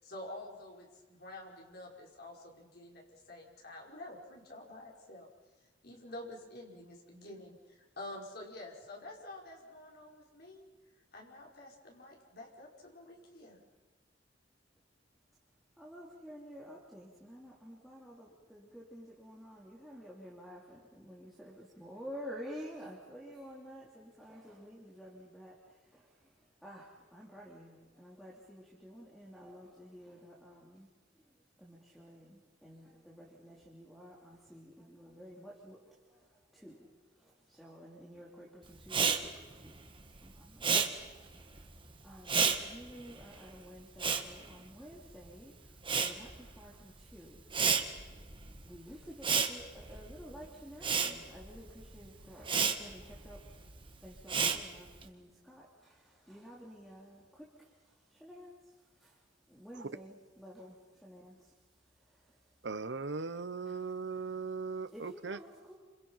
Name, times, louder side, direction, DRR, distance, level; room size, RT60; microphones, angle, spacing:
voice 1, 0.0-5.3 5.8-10.6 11.1-13.6, left 1 dB, 60° left, -1 dB, 5.7 m, -48 dB
voice 2, 15.8-25.5 25.9-26.0 26.6-30.9 31.6-35.8 36.5-36.9 37.5-39.7 40.2-41.2 42.0-45.5 46.0-47.4 48.6-53.4 54.0-57.7 58.1-58.6 59.0-59.1 59.5-61.4 64.9-65.8, equal, ahead, -4 dB, 3.3 m, -51 dB
Respiratory sounds, 38.8-45.3 45.6-55.0, right 6 dB, 30° right, 1.7 m, -33 dB
voice 3, 62.6-65.4, right 4 dB, 70° right, 13 dB, 1.0 m, -38 dB
29.5 x 27.0 x 5.8 m, 1.2 s
head